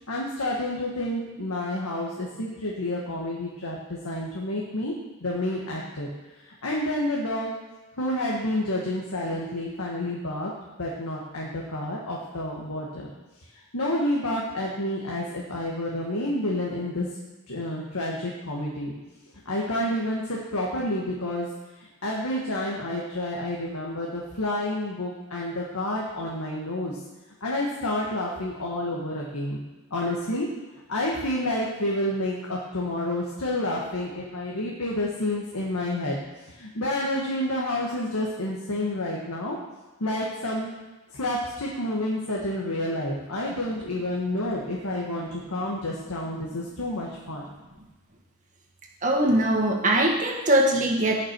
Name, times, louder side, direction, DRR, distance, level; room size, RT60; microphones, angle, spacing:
voice 1, 0.1-4.9 5.2-6.1 6.4-10.5 10.8-13.1 13.5-17.1 17.5-18.9 19.4-21.5 21.8-27.0 27.4-29.6 29.9-39.6 40.0-40.7 41.1-47.5, left 1 dB, 80° left, -3 dB, 1.7 m, -29 dB
voice 2, 49.0-51.2, right 1 dB, 35° right, 0 dB, 1.7 m, -21 dB
17.5 x 6.1 x 4.7 m, 1.2 s
head